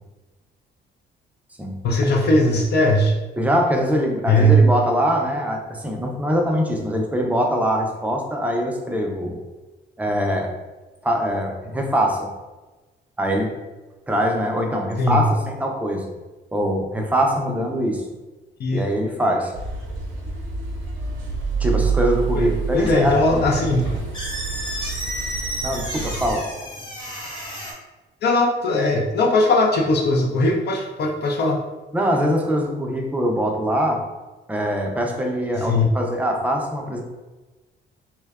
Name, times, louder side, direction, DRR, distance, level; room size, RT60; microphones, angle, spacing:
voice 1, 1.8-3.1 4.3-4.7 15.0-15.3 18.6-18.8 22.4-23.9 28.2-31.6 35.6-35.9, left 1 dB, 55° left, 0 dB, 0.4 m, -19 dB
voice 2, 3.4-9.4 10.0-10.5 11.0-12.2 13.2-13.5 14.1-16.1 16.5-18.0 18.7-19.5 21.6-23.2 25.6-26.4 31.9-34.0 34.5-37.0, equal, 5° right, 1 dB, 0.4 m, -22 dB
sound 1, 19.5-26.3, right 5 dB, 75° right, 0.5 m, -28 dB
sound 2, 22.7-27.7, equal, 25° left, 0.8 m, -32 dB
2.6 x 2.1 x 2.3 m, 1.2 s
cardioid pair, 90°, 20 cm